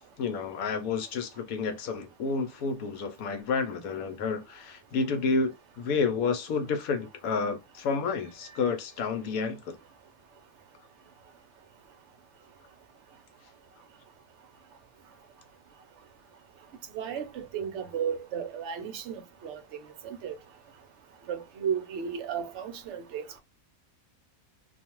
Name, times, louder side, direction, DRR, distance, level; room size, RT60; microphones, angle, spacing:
voice 1, 0.2-9.8, left 5 dB, 80° left, 1.1 m, -30 dB
voice 2, 16.9-19.2 19.4-19.6 20.0-20.3 21.3-23.4, right 7 dB, 65° right, 0.8 m, -34 dB
2.5 x 2.3 x 2.9 m
omnidirectional pair, 1.5 m